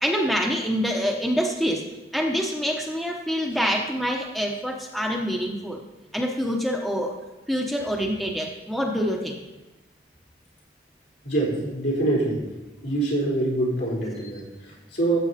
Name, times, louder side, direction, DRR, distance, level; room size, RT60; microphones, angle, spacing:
voice 1, 0.0-1.8 2.1-5.8 6.1-7.1 7.5-9.4, equal, ahead, 0 dB, 1.0 m, -26 dB
voice 2, 11.2-12.4 12.8-15.2, right 2 dB, 75° left, -5 dB, 3.9 m, -25 dB
14.5 x 7.9 x 4.2 m, 1.1 s
head